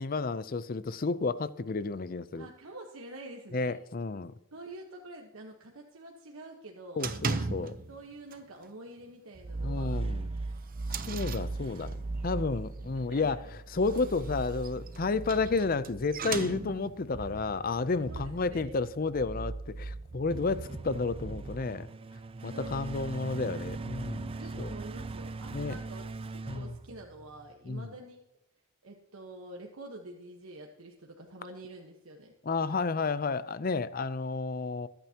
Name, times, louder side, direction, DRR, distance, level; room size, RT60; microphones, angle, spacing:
voice 1, 0.0-2.5 3.5-4.3 7.0-7.8 9.6-10.3 10.9-12.0 12.2-13.4 13.7-21.9 22.4-24.7 25.5-25.7 26.5-26.7 27.7-27.9 32.5-34.9, left 4 dB, 45° left, 0.5 m, -31 dB
voice 2, 2.3-3.7 4.5-7.1 7.9-10.0 12.9-13.5 18.1-18.7 22.5-23.4 24.3-28.2 28.8-32.3, right 2 dB, 80° right, 1.3 m, -47 dB
sound 1, 7.0-8.0 8.3-8.7 9.0-9.1 9.5-9.6 10.2-12.2 13.7-17.1, right 4 dB, 40° right, 0.8 m, -37 dB
sound 2, 9.3-27.5, right 3 dB, 25° right, 0.3 m, -39 dB
22.5 x 9.0 x 2.9 m
head